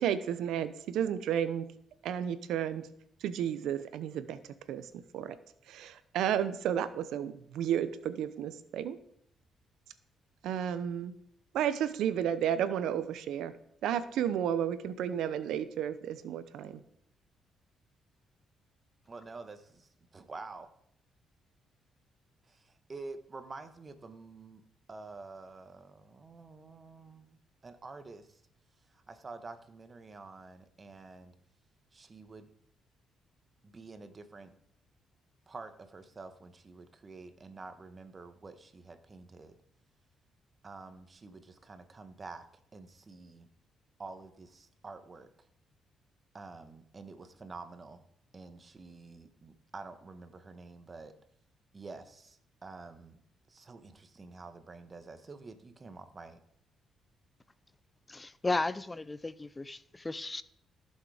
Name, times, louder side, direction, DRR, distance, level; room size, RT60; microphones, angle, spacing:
voice 1, 0.0-1.7 2.0-2.9 3.2-4.4 4.7-4.9 5.1-5.4 5.7-9.0 10.4-11.1 11.5-13.5 13.8-16.8, right 9 dB, 85° right, 0.7 m, -32 dB
voice 2, 19.1-20.7 22.5-24.6 24.9-27.4 27.6-28.4 29.1-31.3 31.9-32.5 33.6-34.5 35.5-39.5 40.6-42.5 42.7-43.5 44.0-45.3 46.3-48.0 48.3-51.1 51.7-53.2 53.5-56.4, right 3 dB, 30° right, 1.3 m, -48 dB
voice 3, 58.1-60.4, left 2 dB, 20° left, 0.5 m, -34 dB
15.0 x 6.6 x 5.0 m
cardioid pair, 90°, 0 cm